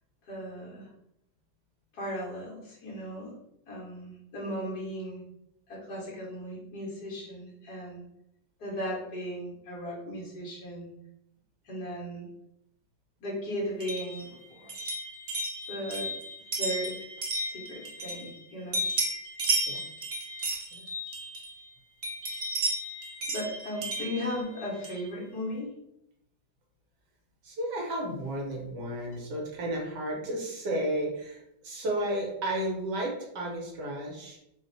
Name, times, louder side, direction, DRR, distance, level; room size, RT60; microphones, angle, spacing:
voice 1, 0.3-0.9 1.9-3.4 3.7-5.2 5.7-8.0 8.6-10.9 11.7-12.3 13.2-14.3 15.7-16.1 16.6-17.1 17.4-18.8 23.3-25.7, equal, 60° left, -5 dB, 2.0 m, -36 dB
sound 1, 13.8-18.4 18.7-21.6 22.0-25.1, right 2 dB, 50° right, 0.7 m, -33 dB
voice 2, 27.4-34.4, right 1 dB, 70° right, -1 dB, 1.7 m, -33 dB
4.2 x 2.4 x 4.0 m, 0.81 s
omnidirectional pair, 1.9 m